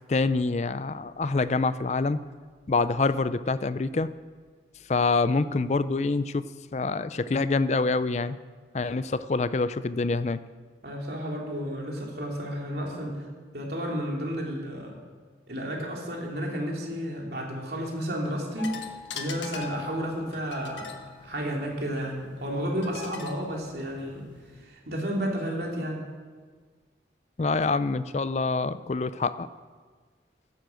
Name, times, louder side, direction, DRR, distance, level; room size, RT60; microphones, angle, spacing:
voice 1, 0.1-2.2 2.7-4.1 4.9-6.4 6.7-8.4 8.7-10.4 27.4-29.5, left 3 dB, 40° left, 15 dB, 0.4 m, -26 dB
voice 2, 10.8-13.3 13.5-15.0 15.5-18.8 19.1-20.9 21.2-24.3 24.6-26.1, equal, 60° right, -1 dB, 2.9 m, -32 dB
sound 1, 18.6-24.6, left 7 dB, 90° left, 1.4 m, -42 dB
12.0 x 11.0 x 7.7 m, 1.5 s
head